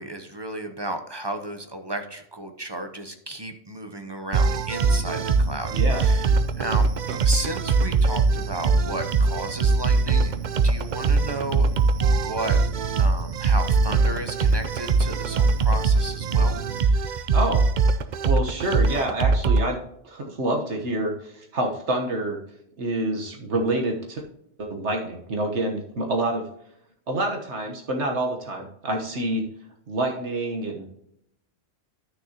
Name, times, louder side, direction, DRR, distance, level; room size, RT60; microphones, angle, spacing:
voice 1, 0.0-6.9 7.2-10.3 10.6-11.7 12.0-12.6 13.0-17.3, right 1 dB, 25° right, 7 dB, 0.7 m, -33 dB
sound 1, 4.3-19.7, right 4 dB, 55° right, 0.6 m, -21 dB
voice 2, 5.7-6.1 7.1-7.2 17.3-17.6 18.3-22.4 22.8-24.2 24.6-26.5 27.1-29.5 29.9-30.8, right 1 dB, 75° right, 2 dB, 1.5 m, -27 dB
11.5 x 6.5 x 2.9 m, 0.77 s
omnidirectional pair, 1.2 m